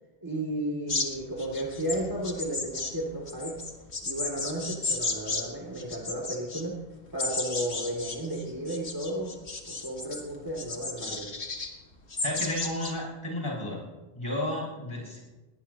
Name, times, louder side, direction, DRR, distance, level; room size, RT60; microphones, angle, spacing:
voice 1, 0.2-3.6 4.0-6.8 7.1-9.3 9.7-11.3, right 1 dB, 20° right, -1 dB, 2.4 m, -33 dB
sound 1, 0.9-5.4 5.8-6.6 7.2-10.2 10.6-11.7 12.1-12.9, left 3 dB, 85° left, 2.1 m, -33 dB
voice 2, 12.2-13.8 14.1-15.2, left 1 dB, 25° left, -5 dB, 6.4 m, -32 dB
21.0 x 18.5 x 2.9 m, 1.2 s
omnidirectional pair, 1.1 m